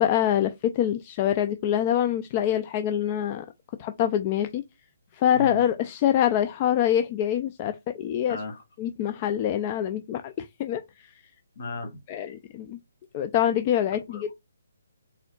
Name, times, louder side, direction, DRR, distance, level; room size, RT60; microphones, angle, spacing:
voice 1, 0.0-3.5 3.8-4.6 5.1-8.4 8.8-11.2 12.1-12.8 13.1-14.3, left 10 dB, 30° left, 0.3 m, -25 dB
voice 2, 8.3-8.6 11.5-11.9 14.1-14.3, left 2 dB, 50° left, 1.5 m, -35 dB
4.2 x 3.6 x 2.3 m
hypercardioid pair, 160°, 0 cm